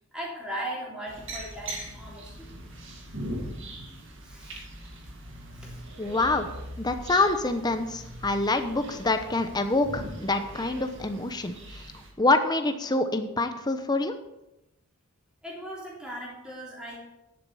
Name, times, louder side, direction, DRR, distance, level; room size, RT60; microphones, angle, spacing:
voice 1, 0.1-2.5 4.2-4.6 5.0-5.1 5.5-5.8 15.4-17.0, right 1 dB, 5° right, -5 dB, 3.5 m, -38 dB
sound 1, 1.1-12.1, right 1 dB, 55° right, 2.1 m, -41 dB
voice 2, 6.0-6.5 6.8-11.9 12.2-14.2, left 2 dB, 20° left, 8 dB, 0.8 m, -26 dB
10.5 x 7.4 x 5.5 m, 0.92 s
head